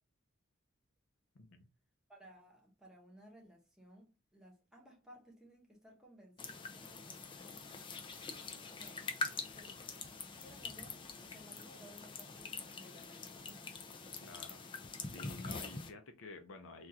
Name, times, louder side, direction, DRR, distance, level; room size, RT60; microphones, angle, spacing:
voice 1, 1.3-1.7 14.2-14.6 15.1-16.9, left 2 dB, 70° left, 0.6 m, -51 dB
voice 2, 2.1-8.1 8.5-9.1 9.4-9.8 10.4-13.8, equal, 5° right, 0.9 m, -59 dB
sound 1, 6.4-15.9, left 4 dB, 25° left, 0.4 m, -45 dB
3.4 x 2.4 x 2.7 m
head